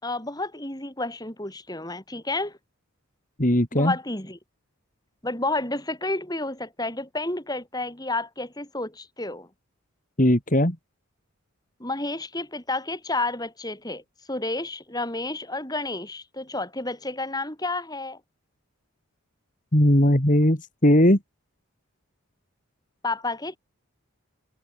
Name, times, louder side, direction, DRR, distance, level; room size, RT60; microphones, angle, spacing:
voice 1, 0.0-2.6 3.7-4.4 5.2-9.5 11.8-14.0 14.3-18.2 23.0-23.6, left 2 dB, 20° left, 4.6 m, -30 dB
voice 2, 3.4-3.9 10.2-10.8 19.7-21.2, left 1 dB, 35° left, 2.9 m, -19 dB
head